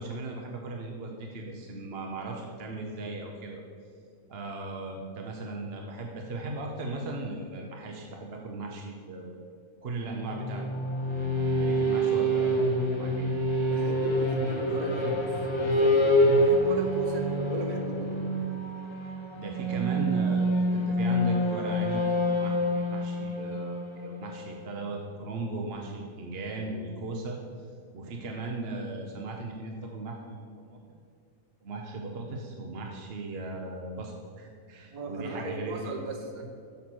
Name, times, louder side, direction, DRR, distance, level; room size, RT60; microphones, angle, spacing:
voice 1, 0.0-3.6 4.3-9.4 9.8-10.6 11.4-13.3 19.4-27.4 27.9-31.0 31.6-35.9, right 2 dB, 50° right, 1 dB, 0.9 m, -37 dB
sound 1, 10.2-24.9, equal, 25° left, 0.6 m, -27 dB
voice 2, 13.7-18.3 34.9-36.5, right 1 dB, 70° right, 2 dB, 1.5 m, -36 dB
7.3 x 5.8 x 6.1 m, 2.3 s
omnidirectional pair, 1.6 m